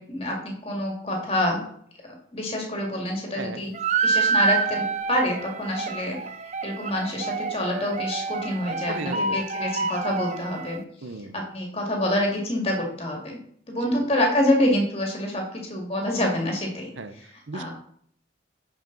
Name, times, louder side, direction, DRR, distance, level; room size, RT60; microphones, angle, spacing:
voice 1, 0.1-1.6 2.3-3.7 4.0-6.2 6.4-10.8 11.3-13.4 13.7-17.7, left 1 dB, 30° left, 0 dB, 2.1 m, -27 dB
sound 1, 3.7-10.8, right 4 dB, 35° right, 0.5 m, -27 dB
voice 2, 8.9-9.4 11.0-11.3 13.9-14.0 17.0-17.1 17.5-17.7, right 3 dB, 75° right, 10 dB, 0.7 m, -35 dB
10.5 x 5.0 x 3.9 m, 0.64 s
head